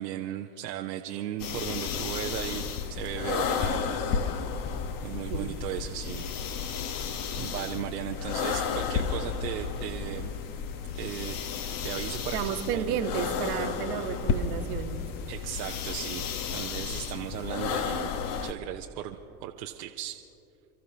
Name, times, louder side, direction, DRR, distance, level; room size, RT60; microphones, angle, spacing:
voice 1, 0.0-4.0 5.0-6.3 7.4-10.3 10.9-11.4 11.8-12.4 12.7-13.0 15.3-16.2 16.5-18.1 18.4-20.2, right 12 dB, 75° right, 3 dB, 0.8 m, -36 dB
sound 1, 1.4-18.5, left 6 dB, 40° left, 1.1 m, -32 dB
voice 2, 12.3-15.1, right 9 dB, 60° right, 6 dB, 1.4 m, -32 dB
29.0 x 14.0 x 2.8 m, 2.8 s
hypercardioid pair, 85°, 49 cm